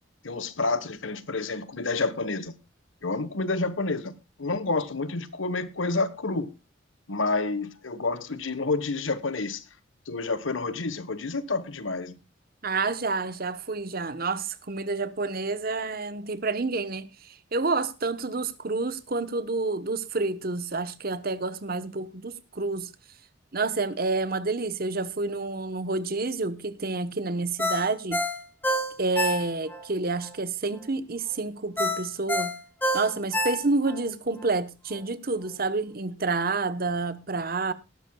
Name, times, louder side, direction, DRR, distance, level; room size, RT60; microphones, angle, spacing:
voice 1, 0.2-2.5 3.0-6.5 7.1-9.6 10.1-12.2, left 3 dB, 80° left, 1.3 m, -29 dB
voice 2, 12.6-22.9 23.5-28.3 29.0-32.6 32.9-37.7, right 3 dB, 50° right, 1.0 m, -29 dB
Ringtone, 27.6-29.8 30.2-30.3 31.8-34.0 34.4-34.5, equal, 10° left, 3.0 m, -27 dB
18.5 x 12.5 x 2.3 m
head